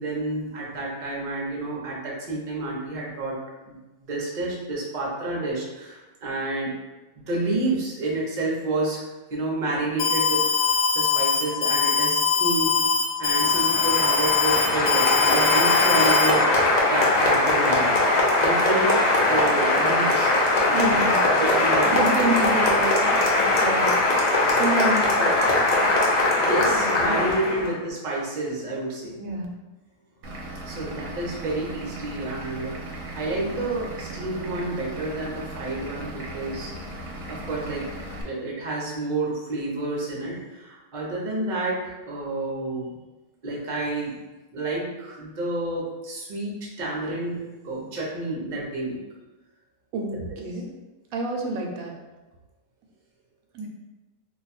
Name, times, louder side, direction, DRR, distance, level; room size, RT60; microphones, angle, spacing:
voice 1, 0.0-3.3 3.7-3.8 4.0-6.7 7.1-9.0 9.3-12.7 13.2-20.3 20.6-20.8 21.4-21.9 22.5-22.6 26.4-29.2 30.6-36.7 37.3-37.9 38.2-43.0 43.4-44.2 44.5-49.0, right 2 dB, 40° right, -4 dB, 0.8 m, -29 dB
Alarm, 10.0-16.3, left 5 dB, 85° left, 1.0 m, -22 dB
Applause, 13.3-27.7, left 2 dB, 55° left, 0.4 m, -21 dB
voice 2, 20.7-21.2 21.9-23.1 23.5-23.9 24.5-25.6 26.7-27.7 29.2-29.5 49.9-50.7 51.1-51.9 53.5-53.7, right 2 dB, 90° right, 1 dB, 1.0 m, -28 dB
Vehicle / Engine, 30.2-38.2, right 1 dB, 70° right, 1.0 m, -37 dB
2.6 x 2.2 x 4.0 m, 1.1 s
omnidirectional pair, 1.4 m